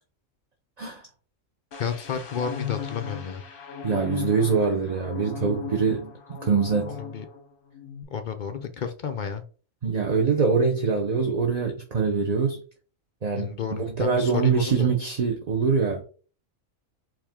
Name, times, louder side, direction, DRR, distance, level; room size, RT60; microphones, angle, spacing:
sound 1, 1.7-7.4 7.7-8.0, left 8 dB, 50° left, 0.8 m, -37 dB
voice 1, 1.8-3.4 6.9-7.2 8.1-9.4 13.3-14.9, left 7 dB, 65° left, 7 dB, 0.4 m, -31 dB
voice 2, 3.8-6.9 9.8-12.6 13.2-16.0, right 5 dB, 40° right, 1 dB, 0.7 m, -24 dB
4.8 x 3.0 x 3.6 m, 0.38 s
omnidirectional pair, 1.4 m